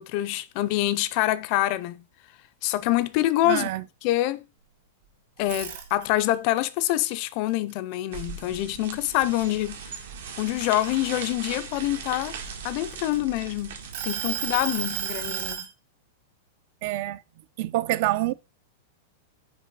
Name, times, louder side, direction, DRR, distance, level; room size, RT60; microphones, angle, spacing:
voice 1, 0.0-2.0 2.6-3.7 4.0-4.5 5.4-10.0 10.4-12.4 12.6-13.8 14.0-15.7, left 15 dB, 40° left, 0.5 m, -26 dB
voice 2, 3.5-3.8 16.8-17.2 17.6-18.3, right 16 dB, 50° right, 0.4 m, -26 dB
sound 1, 5.4-6.3 6.8-8.6 9.0-9.3 9.7-11.5 12.2-13.4 13.9-15.7, right 10 dB, 65° right, 2.5 m, -32 dB
sound 2, 8.1-15.6, right 6 dB, 80° right, 1.7 m, -39 dB
6.0 x 4.7 x 4.8 m
supercardioid pair, 155°, 0 cm